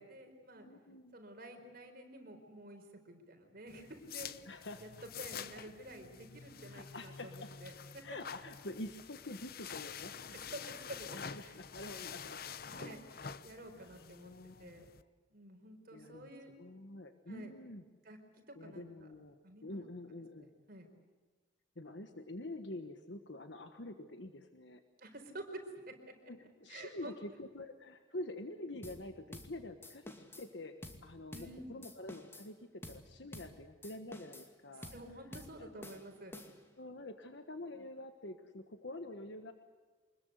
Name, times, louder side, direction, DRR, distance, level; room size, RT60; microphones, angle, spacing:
voice 1, 0.0-0.7 1.1-4.3 4.8-4.9 5.2-8.0 10.3-11.1 11.4-11.6 12.6-14.3 14.6-14.9 15.3-16.5 17.3-17.5 18.0-18.9 19.4-19.9 20.4-20.9 25.0-25.9 26.7-27.2 31.3-31.7 34.8-36.4, right 1 dB, 50° right, 4 dB, 4.5 m, -50 dB
voice 2, 0.6-1.2 4.4-4.8 6.7-7.5 8.0-10.4 11.1-12.4 13.7-14.8 15.9-16.3 16.6-17.8 18.5-20.5 21.7-24.8 26.3-30.7 31.0-34.9 35.3-35.7 36.8-39.5, left 1 dB, 65° left, 7 dB, 1.4 m, -47 dB
sound 1, 3.7-15.0, left 7 dB, 50° left, 0.9 m, -48 dB
sound 2, 28.8-29.0 29.3-29.5 29.8-30.5 30.8-31.0 31.3-31.5 31.8-32.5 32.8-33.0 33.3-33.5 33.8-34.5 34.8-35.0 35.3-35.5 35.8-36.7, left 1 dB, 15° left, 2.4 m, -50 dB
25.5 x 21.0 x 8.1 m, 1.4 s
head